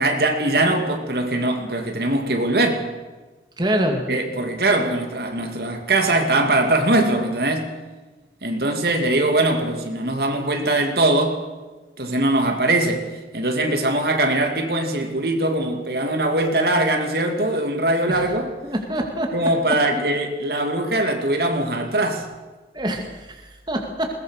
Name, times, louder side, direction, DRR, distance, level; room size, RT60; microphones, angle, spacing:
voice 1, 0.0-2.8 4.1-7.7 8.4-11.4 12.0-13.1 13.3-18.5 19.3-22.3, right 2 dB, 60° right, 4 dB, 2.7 m, -21 dB
voice 2, 3.6-4.0 18.1-18.3 18.6-19.3 22.7-24.1, right 1 dB, 25° right, 2 dB, 2.2 m, -25 dB
21.0 x 19.5 x 6.6 m, 1.2 s
head